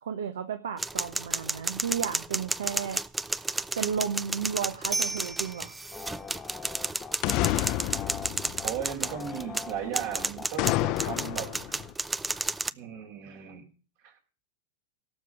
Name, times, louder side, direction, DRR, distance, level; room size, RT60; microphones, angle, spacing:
voice 1, 0.0-3.0 3.7-5.7, right 7 dB, 75° right, 8 dB, 1.2 m, -33 dB
sound 1, 0.8-12.7, right 3 dB, 10° right, 0.5 m, -32 dB
sound 2, 5.2-5.3 7.2-9.4 10.6-11.9, left 17 dB, 50° left, 0.6 m, -30 dB
sound 3, 5.9-10.5 11.0-11.1, left 6 dB, 25° left, 1.2 m, -42 dB
voice 2, 8.6-11.6 12.7-13.6 14.0-14.1, right 9 dB, 60° right, 2 dB, 4.7 m, -36 dB
17.5 x 6.7 x 6.1 m, 0.38 s
hypercardioid pair, 100°, 0 cm